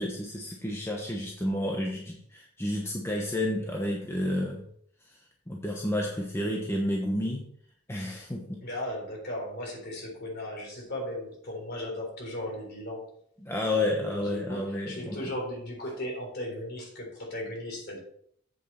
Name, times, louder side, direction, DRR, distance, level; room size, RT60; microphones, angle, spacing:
voice 1, 0.0-4.7 5.5-7.5 7.9-8.6 13.4-15.2, left 1 dB, 10° left, -1 dB, 1.0 m, -30 dB
voice 2, 8.6-13.1 13.7-18.0, left 1 dB, 50° left, -1 dB, 3.8 m, -37 dB
8.0 x 7.3 x 4.4 m, 0.67 s
head